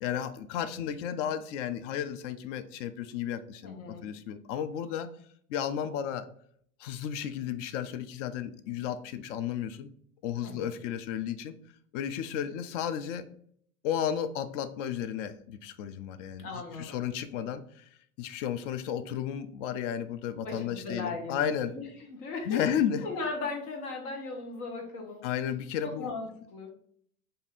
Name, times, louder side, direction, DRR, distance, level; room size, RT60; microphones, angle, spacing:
voice 1, 0.0-3.8 4.0-5.1 5.5-6.3 6.8-9.9 10.2-11.5 11.9-13.3 13.8-16.5 16.8-17.8 18.2-21.7 22.5-23.1 25.2-26.1, left 9 dB, 55° left, 11 dB, 0.5 m, -33 dB
voice 2, 3.6-4.0 10.4-10.7 16.4-17.0 20.4-22.7 23.0-25.2 25.8-26.7, left 3 dB, 70° left, 1 dB, 1.0 m, -37 dB
2.7 x 2.6 x 4.0 m, 0.64 s
hypercardioid pair, 90°, 46 cm